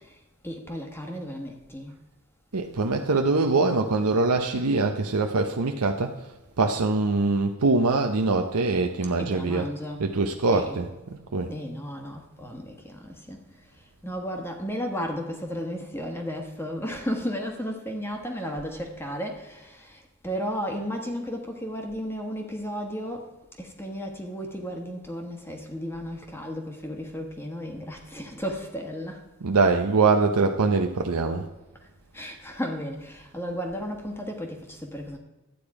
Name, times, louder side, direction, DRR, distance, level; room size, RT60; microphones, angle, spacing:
voice 1, 0.0-1.9 9.2-10.1 10.5-10.9 11.5-29.3 31.8-31.9 32.1-35.2, equal, 10° left, 2 dB, 1.2 m, -34 dB
voice 2, 2.5-6.1 6.6-9.7 10.0-11.5 29.4-31.5, right 3 dB, 90° right, 4 dB, 0.8 m, -23 dB
12.0 x 8.8 x 4.8 m, 1.1 s
head